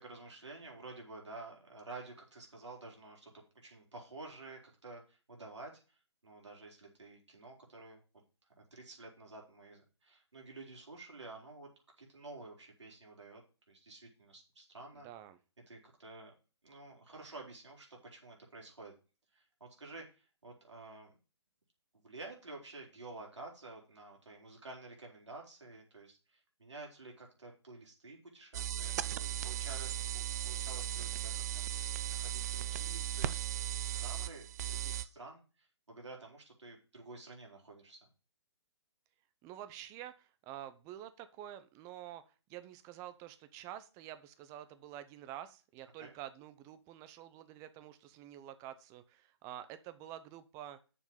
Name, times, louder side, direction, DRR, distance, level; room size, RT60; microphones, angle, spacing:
voice 1, 0.0-8.0 8.6-11.7 12.0-15.1 15.7-16.3 16.6-18.9 19.3-21.1 21.9-31.6 32.1-38.0 46.0-46.1, right 3 dB, 85° right, 0 dB, 4.1 m, -51 dB
voice 2, 15.0-15.4 39.4-50.8, right 12 dB, 20° right, 12 dB, 0.9 m, -48 dB
sound 1, 28.5-35.0, right 12 dB, 35° right, 0.5 m, -37 dB
6.9 x 5.9 x 7.4 m, 0.34 s
figure-of-eight pair, 140°, 15 cm